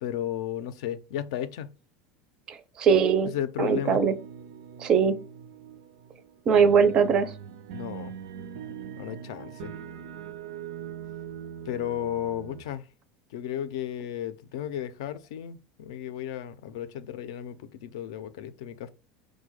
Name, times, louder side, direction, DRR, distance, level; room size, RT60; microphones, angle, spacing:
voice 1, 0.0-1.7 3.2-4.0 7.7-8.1 9.0-9.7 11.7-12.8 13.3-18.9, left 11 dB, 75° left, 0.5 m, -34 dB
voice 2, 2.5-3.3 3.6-4.1 4.8-5.2 6.5-7.3, right 6 dB, 25° right, 0.4 m, -21 dB
sound 1, 3.7-12.6, right 8 dB, 80° right, 0.5 m, -42 dB
4.9 x 2.2 x 4.6 m
supercardioid pair, 175°, 3 cm